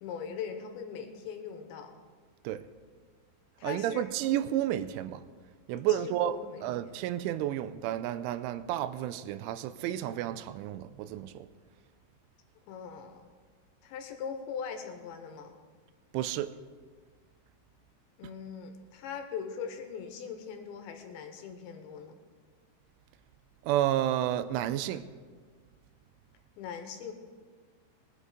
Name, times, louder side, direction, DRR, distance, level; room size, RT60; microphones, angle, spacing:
voice 1, 0.0-1.9 3.6-4.1 5.7-7.0 12.7-13.3 13.8-15.5 18.2-22.2 26.6-27.1, left 7 dB, 75° left, 3.2 m, -41 dB
voice 2, 3.6-5.2 5.7-11.5 16.1-16.5 23.6-25.1, right 12 dB, 85° right, 3.1 m, -31 dB
20.0 x 8.2 x 5.0 m
omnidirectional pair, 5.4 m